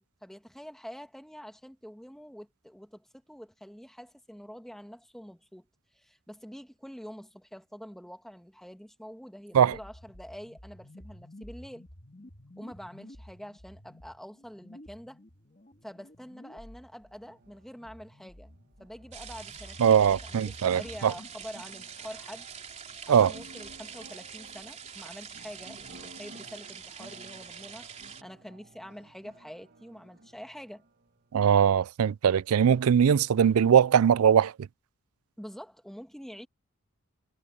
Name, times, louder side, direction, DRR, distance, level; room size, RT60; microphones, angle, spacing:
voice 1, 0.0-5.7 5.9-11.8 12.6-15.2 15.8-18.5 18.8-22.5 23.1-30.8 35.4-36.5, equal, ahead, 1.6 m, -46 dB
sound 1, 9.7-21.3, left 1 dB, 35° left, 1.9 m, -51 dB
sound 2, 17.1-31.7, right 1 dB, 50° right, 1.5 m, -55 dB
sound 3, 19.1-28.2, right 7 dB, 30° right, 3.6 m, -45 dB
voice 2, 19.8-21.1 23.1-23.3 31.3-34.5, right 8 dB, 85° right, 0.4 m, -21 dB
head